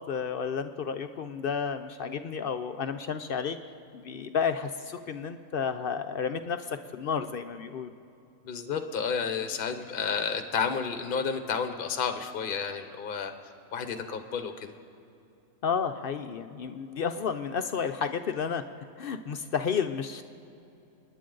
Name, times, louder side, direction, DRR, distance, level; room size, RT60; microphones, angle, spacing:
voice 1, 0.1-3.6 3.9-7.9 15.6-18.6 19.0-20.2, left 6 dB, 60° left, 8 dB, 0.6 m, -31 dB
voice 2, 8.4-13.3 13.7-14.7, left 6 dB, 45° left, 8 dB, 0.9 m, -31 dB
28.0 x 10.0 x 3.8 m, 2.7 s
omnidirectional pair, 1.4 m